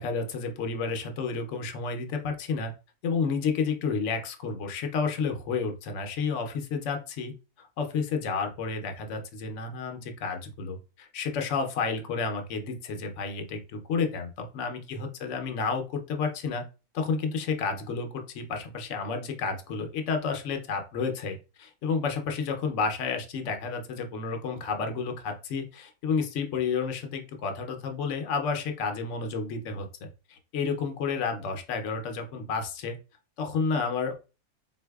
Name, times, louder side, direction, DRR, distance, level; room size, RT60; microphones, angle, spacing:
voice 1, 0.0-2.7 3.0-16.6 16.9-33.0 33.4-34.1, left 5 dB, 65° left, 5 dB, 0.9 m, -31 dB
3.9 x 2.6 x 2.2 m, 0.32 s
omnidirectional pair, 1.5 m